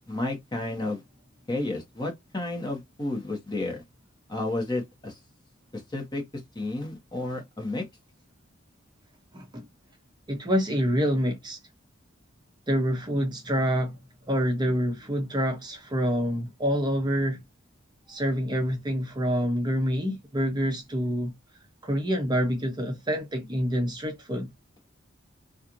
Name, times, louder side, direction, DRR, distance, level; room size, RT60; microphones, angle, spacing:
voice 1, 0.1-1.0 1.5-3.8 4.3-5.2 5.7-6.2 6.5-7.8, left 2 dB, 20° left, 1.1 m, -31 dB
voice 2, 9.3-9.6 10.3-11.6 12.7-13.9 14.3-17.4 18.1-21.3 21.8-24.5, equal, 20° right, 0.7 m, -27 dB
3.1 x 2.5 x 2.5 m
head